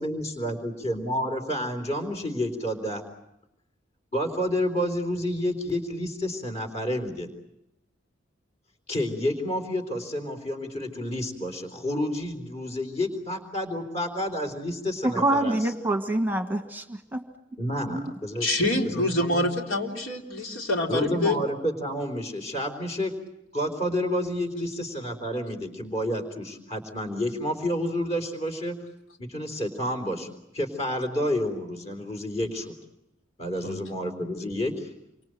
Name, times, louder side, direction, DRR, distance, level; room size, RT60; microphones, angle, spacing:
voice 1, 0.0-3.0 4.1-7.3 8.9-15.6 17.6-19.5 20.9-23.2 23.5-28.8 29.2-30.3 30.5-32.7 33.4-34.9, equal, 35° left, 5 dB, 3.9 m, -30 dB
voice 2, 15.0-17.2 17.9-18.0, right 1 dB, 10° right, 6 dB, 1.4 m, -26 dB
voice 3, 18.4-21.4 33.6-33.8, left 1 dB, 85° left, 1 dB, 3.5 m, -26 dB
28.0 x 25.0 x 7.8 m, 0.87 s
head